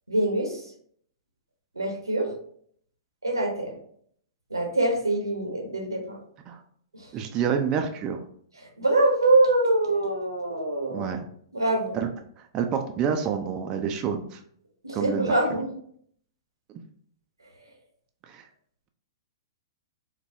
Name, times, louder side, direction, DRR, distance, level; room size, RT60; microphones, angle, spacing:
voice 1, 0.1-0.7 1.8-2.3 3.2-3.8 4.5-6.2 7.0-7.1 8.6-11.1 11.5-12.0 14.8-15.7, right 2 dB, 90° right, 2 dB, 0.8 m, -24 dB
voice 2, 7.1-8.2 10.9-11.3 11.9-12.1 12.5-14.4 14.9-15.3 18.3-18.4, right 7 dB, 30° right, 5 dB, 0.4 m, -28 dB
4.1 x 2.2 x 2.6 m, 0.62 s
figure-of-eight pair, 110°, 2 cm